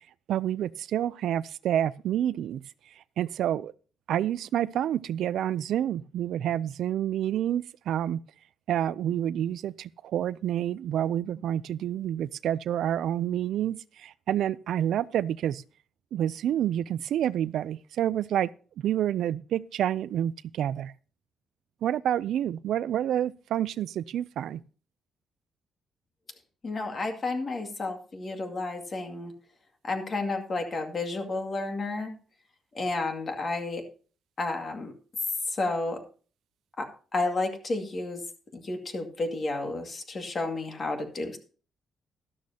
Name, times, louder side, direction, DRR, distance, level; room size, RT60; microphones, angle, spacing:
voice 1, 0.3-2.6 3.2-3.7 4.1-8.2 8.7-15.6 16.1-18.5 18.8-20.9 21.8-24.6, right 11 dB, 75° right, 0.4 m, -28 dB
voice 2, 26.6-29.3 29.8-32.1 32.7-33.8 34.4-34.9 35.5-36.0 36.8-36.9 37.1-38.2 38.5-41.4, left 2 dB, 35° left, 2.2 m, -31 dB
12.5 x 12.5 x 2.8 m
cardioid pair, 140°, 0 cm